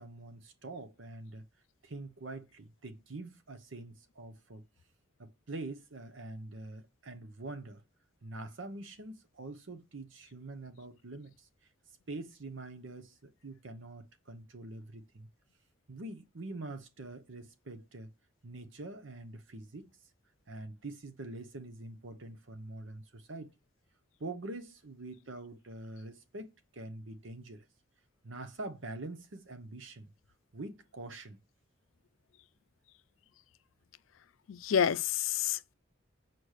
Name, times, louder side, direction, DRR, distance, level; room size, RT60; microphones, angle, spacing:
voice 1, 0.0-1.5 1.8-4.6 5.2-7.8 8.2-11.5 12.1-15.3 15.9-18.1 18.4-19.9 20.5-23.5 24.2-27.7 28.2-30.1 30.5-31.4, right 2 dB, 70° right, 0.9 m, -45 dB
voice 2, 34.5-35.7, left 8 dB, 80° left, 0.4 m, -29 dB
6.4 x 4.3 x 6.5 m
head